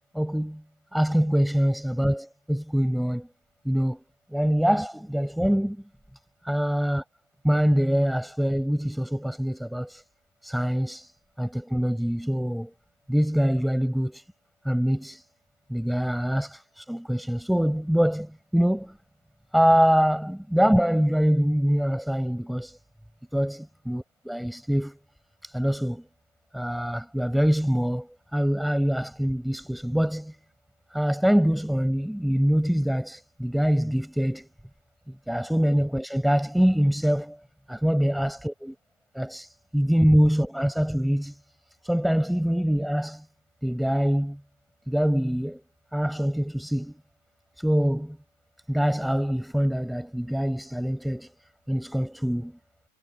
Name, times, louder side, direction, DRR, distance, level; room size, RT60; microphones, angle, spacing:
voice 1, 0.1-0.6 0.9-3.3 3.6-4.0 4.3-5.8 6.4-7.0 7.4-10.0 10.4-11.1 11.4-12.7 13.1-14.2 14.6-15.2 15.7-19.0 19.5-22.8 23.3-25.0 25.4-26.0 26.5-30.3 30.9-34.5 35.1-37.4 37.7-38.7 39.1-41.4 41.8-43.2 43.6-44.4 44.9-45.6 45.9-47.0 47.6-48.2 48.7-51.3 51.7-52.6, equal, ahead, 6.4 m, -24 dB
figure-of-eight pair, 90°, 0 cm